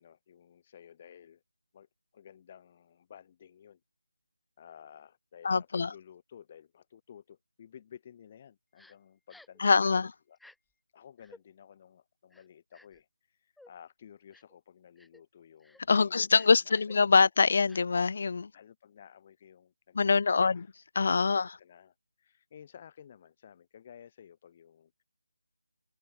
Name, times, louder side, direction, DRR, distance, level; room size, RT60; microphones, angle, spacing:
voice 1, 0.0-1.4 1.7-1.9 2.1-3.8 4.6-10.4 10.9-17.3 18.5-20.7 21.1-25.0, left 9 dB, 25° left, 1.2 m, -54 dB
voice 2, 5.4-5.9 9.6-10.1 15.9-18.5 19.9-20.6 21.0-21.6, left 4 dB, 45° left, 0.3 m, -24 dB
Crying sobbing, 8.8-8.9 9.3-9.6 10.3-10.6 11.2-11.4 12.3-13.0 13.6-13.7 14.3-14.6 15.0-15.2 15.6-15.8 16.3-16.9 17.7-17.8, left 2 dB, ahead, 2.5 m, -57 dB
figure-of-eight pair, 165°, 0 cm